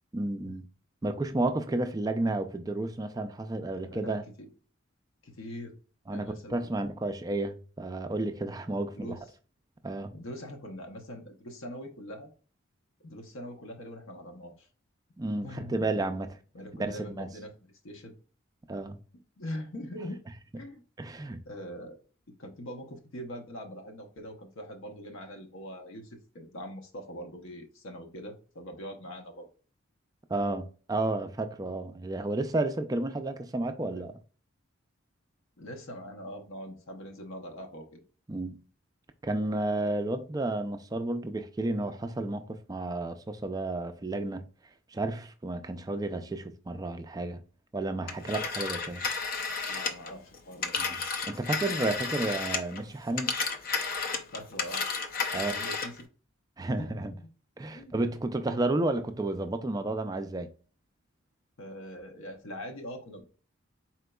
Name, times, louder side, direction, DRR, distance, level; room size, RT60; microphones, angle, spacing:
voice 1, 0.1-0.7 1.0-4.2 6.1-9.2 9.8-10.1 15.2-16.3 16.8-17.3 18.7-19.0 21.0-21.4 30.3-34.2 38.3-38.6 39.2-44.4 44.9-47.4 47.7-49.0 50.8-53.3 55.3-55.6 56.6-57.1 57.6-60.5, right 2 dB, 15° right, 0.3 m, -32 dB
voice 2, 3.7-4.5 5.2-5.8 6.1-6.7 9.0-9.2 10.1-12.3 13.0-14.7 15.4-15.9 16.5-18.1 19.4-20.2 20.6-20.8 21.5-22.0 22.4-29.5 33.9-34.0 35.6-38.0 49.7-50.7 54.3-54.8 55.3-56.0 56.7-57.2 57.7-57.9 61.6-63.2, equal, 70° left, 0.8 m, -42 dB
Telephone, 48.1-52.8 53.1-56.0, left 4 dB, 45° left, 0.5 m, -32 dB
4.3 x 3.9 x 2.2 m
head